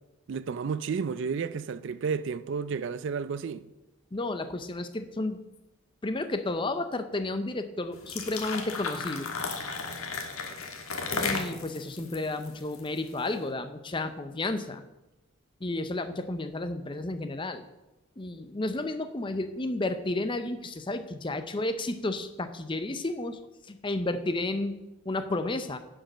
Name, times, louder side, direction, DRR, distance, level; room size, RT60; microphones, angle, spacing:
voice 1, 0.3-3.7, right 5 dB, 55° right, 0.3 m, -32 dB
voice 2, 4.1-5.4 6.0-9.3 11.1-14.8 15.6-17.6 18.2-24.8 25.1-25.8, left 2 dB, 20° left, 0.6 m, -32 dB
sound 1, 7.9-13.2, left 4 dB, 75° left, 1.4 m, -34 dB
10.0 x 5.3 x 6.2 m
head